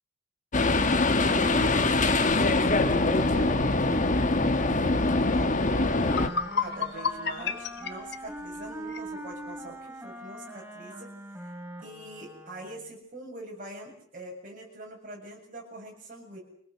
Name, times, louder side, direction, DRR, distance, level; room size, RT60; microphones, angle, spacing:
sound 1, 0.5-6.3, left 2 dB, 40° left, 1.4 m, -23 dB
voice 1, 1.2-4.2 4.5-6.1 6.6-11.1 11.8-16.4, right 2 dB, 40° right, 0 dB, 7.7 m, -43 dB
Wind instrument woodwind instrument, 5.5-12.9, right 1 dB, 10° right, 4.9 m, -42 dB
sound 2, 6.0-9.1, left 5 dB, 55° left, 1.3 m, -32 dB
25.5 x 18.5 x 7.8 m, 0.70 s
head